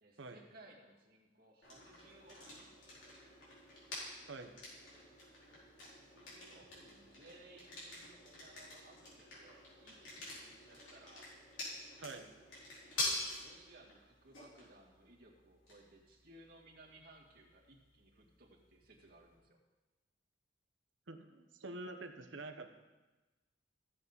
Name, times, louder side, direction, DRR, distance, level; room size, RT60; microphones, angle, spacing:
voice 1, 0.0-2.7 5.9-11.3 13.4-19.6, right 2 dB, 55° right, -3 dB, 2.2 m, -61 dB
sound 1, 1.6-19.4, left 2 dB, 85° left, 4.3 m, -47 dB
voice 2, 21.1-22.7, right 2 dB, 80° right, 5 dB, 1.0 m, -47 dB
15.5 x 7.4 x 4.1 m, 1.2 s
head